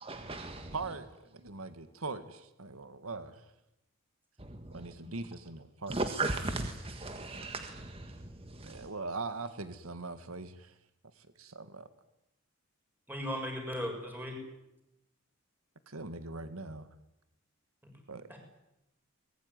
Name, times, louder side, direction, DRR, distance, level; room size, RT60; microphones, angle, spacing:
voice 1, 0.1-0.7 4.4-4.7 5.9-8.9, right 2 dB, 25° right, 1.6 m, -37 dB
voice 2, 0.7-3.4 4.7-6.0 8.6-10.7 11.2-11.9 15.9-16.9 18.1-18.3, right 3 dB, 90° right, 1.9 m, -41 dB
voice 3, 13.1-14.4 18.3-18.4, equal, 10° right, 6.9 m, -37 dB
24.5 x 21.0 x 9.7 m
head